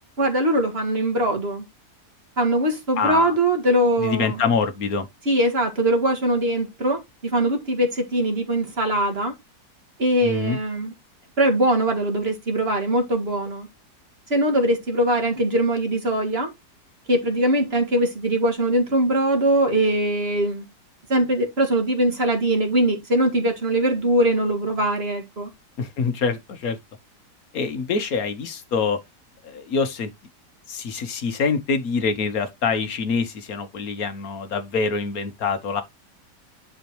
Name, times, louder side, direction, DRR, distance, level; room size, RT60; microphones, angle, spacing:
voice 1, 0.2-1.6 2.4-4.4 5.3-9.3 10.0-10.9 11.4-13.7 14.3-16.5 17.1-20.7 21.1-25.5, right 1 dB, 40° right, 2.1 m, -21 dB
voice 2, 3.0-3.3 4.0-5.1 10.2-10.6 25.8-26.8 27.5-29.0 29.4-30.1 30.7-35.8, left 5 dB, 60° left, 1.6 m, -25 dB
10.5 x 5.2 x 3.0 m
omnidirectional pair, 1.8 m